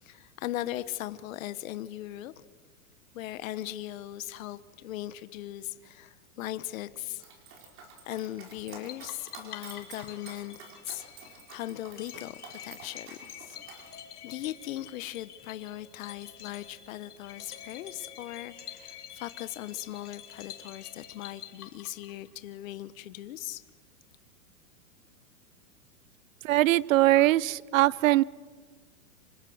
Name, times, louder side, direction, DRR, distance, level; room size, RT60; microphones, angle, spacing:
voice 1, 0.0-2.3 3.1-7.2 8.0-10.6 10.8-13.5 13.8-13.9 14.2-23.6, left 14 dB, 60° left, 14 dB, 1.1 m, -39 dB
Dog, 7.2-13.9, right 5 dB, 25° right, 4.3 m, -49 dB
sound 1, 8.9-22.3, left 10 dB, 85° left, 3.4 m, -48 dB
voice 2, 26.4-28.2, right 16 dB, 60° right, 23 dB, 0.7 m, -22 dB
28.0 x 26.5 x 6.3 m, 1.5 s
hypercardioid pair, 145°, 44 cm